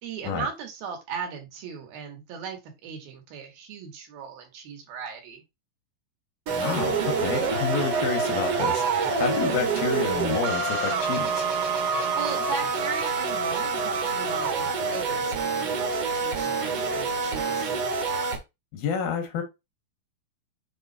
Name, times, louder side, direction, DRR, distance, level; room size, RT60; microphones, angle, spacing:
voice 1, 0.0-5.4 12.1-17.7, right 6 dB, 80° right, 3.5 m, -37 dB
voice 2, 6.5-8.8 9.2-11.5 18.7-19.4, left 6 dB, 80° left, 3.3 m, -29 dB
sound 1, 6.5-18.4, right 4 dB, 55° right, 1.7 m, -26 dB
7.8 x 3.2 x 4.1 m
omnidirectional pair, 4.2 m